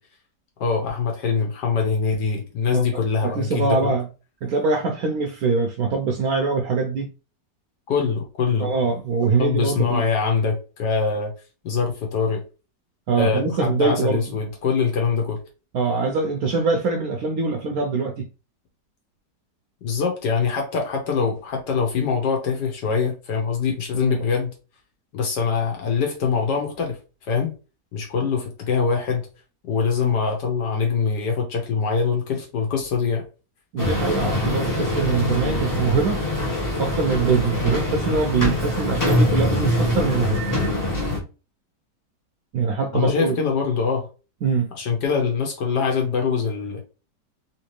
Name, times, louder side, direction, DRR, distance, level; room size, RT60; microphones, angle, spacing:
voice 1, 0.6-3.8 7.9-8.7 9.4-11.3 11.6-12.4 13.2-15.4 19.8-24.5 25.1-27.5 27.9-29.2 29.7-33.2 42.9-44.1 44.7-46.8, left 5 dB, 75° left, 1.5 m, -23 dB
voice 2, 2.7-4.1 4.4-7.1 8.6-10.0 13.1-14.2 15.7-18.3 23.9-24.2 33.7-36.2 36.8-40.4 42.5-43.3 44.4-44.7, right 4 dB, 70° right, 0.9 m, -23 dB
sound 1, 33.8-41.2, left 1 dB, 15° left, 0.7 m, -23 dB
3.4 x 2.9 x 3.0 m
omnidirectional pair, 1.9 m